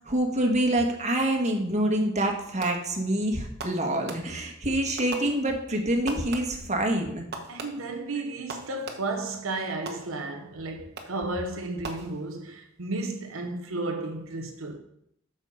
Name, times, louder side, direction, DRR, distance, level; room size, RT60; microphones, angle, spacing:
voice 1, 0.0-7.3, right 1 dB, 35° right, 1.5 m, -26 dB
Fireworks, 2.6-3.0 3.6-4.6 5.0-5.8 6.1-6.8 7.3-9.3 9.9-10.5 11.0-11.4 11.8-12.6, right 3 dB, 55° right, 1.3 m, -41 dB
voice 2, 7.5-14.8, right 2 dB, 80° right, 1.0 m, -33 dB
8.3 x 6.5 x 5.5 m
head